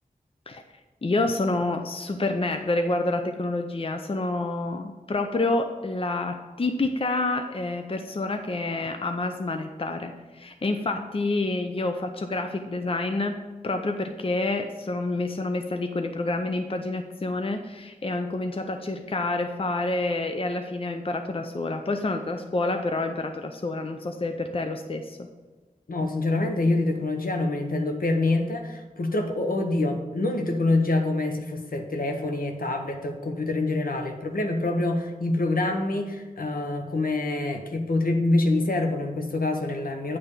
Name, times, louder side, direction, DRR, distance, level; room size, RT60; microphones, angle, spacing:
voice 1, 1.0-13.3 13.6-25.3, left 2 dB, 40° left, 5 dB, 0.6 m, -28 dB
voice 2, 25.9-40.2, left 2 dB, 75° left, 4 dB, 0.9 m, -26 dB
8.8 x 3.4 x 6.6 m, 1.2 s
wide cardioid pair, 60°, 15 cm